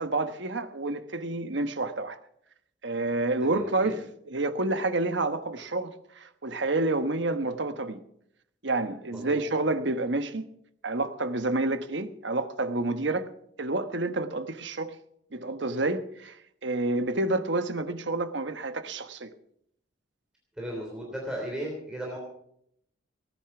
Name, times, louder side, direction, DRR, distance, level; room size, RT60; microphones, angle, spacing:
voice 1, 0.0-2.2 2.8-8.0 8.6-10.4 10.8-13.3 13.6-14.9 15.3-19.3, right 2 dB, 65° right, 1.2 m, -29 dB
voice 2, 3.4-4.0 9.1-9.4 20.6-22.2, right 1 dB, 5° right, 3.2 m, -36 dB
18.5 x 10.0 x 6.0 m
head